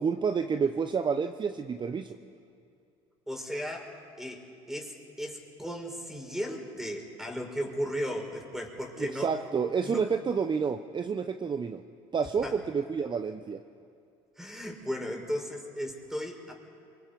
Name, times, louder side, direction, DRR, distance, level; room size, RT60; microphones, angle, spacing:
voice 1, 0.0-2.2 9.0-11.8 12.1-13.6, right 6 dB, 35° right, 9 dB, 1.0 m, -29 dB
voice 2, 3.3-9.5 9.8-10.1 12.4-12.6 14.4-16.5, equal, 5° right, 2 dB, 5.7 m, -36 dB
28.0 x 26.0 x 5.4 m, 2.5 s
hypercardioid pair, 70°, 14 cm